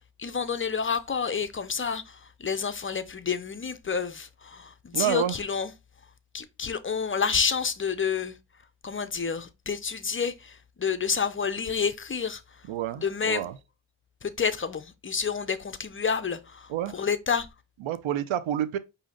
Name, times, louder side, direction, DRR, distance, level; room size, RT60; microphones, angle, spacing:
voice 1, 0.2-5.7 6.3-8.4 8.8-12.7 12.9-13.4 14.2-17.5, left 6 dB, 25° left, 0.5 m, -29 dB
voice 2, 4.9-5.3 12.7-13.5 16.7-17.0 17.8-18.8, right 11 dB, 70° right, 0.6 m, -28 dB
4.9 x 2.7 x 3.7 m
cardioid pair, 80°, 50 cm